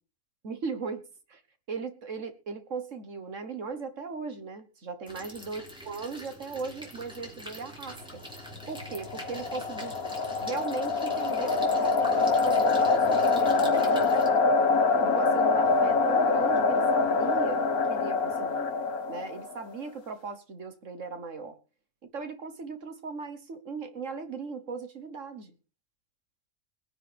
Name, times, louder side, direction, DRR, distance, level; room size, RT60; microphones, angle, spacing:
voice 1, 0.4-1.0 1.3-1.4 1.7-8.2 8.7-9.9 10.4-14.1 15.0-18.7 19.1-21.6 22.0-25.5, right 4 dB, 60° right, 9 dB, 1.6 m, -38 dB
sound 1, 5.1-14.3, equal, 5° right, 3.6 m, -44 dB
sound 2, 8.8-19.6, left 4 dB, 80° left, 1.9 m, -25 dB
21.0 x 10.0 x 3.5 m, 0.34 s
omnidirectional pair, 1.5 m